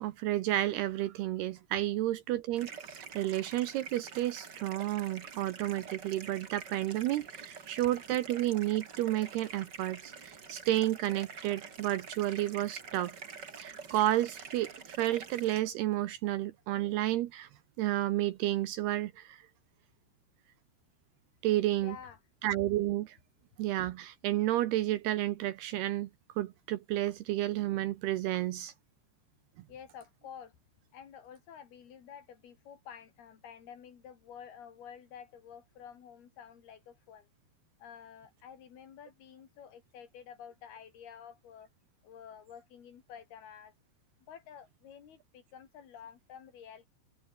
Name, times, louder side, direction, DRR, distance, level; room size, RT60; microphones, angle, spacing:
voice 1, 0.0-13.2 13.6-17.5 17.8-19.4 21.4-22.0 22.4-23.2 23.6-26.1 26.4-28.7, right 14 dB, 75° right, 2.6 m, -31 dB
sound 1, 2.5-15.6, right 5 dB, 35° right, 1.8 m, -47 dB
voice 2, 21.8-22.2 29.7-30.6 30.9-37.3 37.8-41.7 42.0-43.7 44.3-46.9, left 8 dB, 60° left, 4.4 m, -50 dB
omnidirectional pair, 5.3 m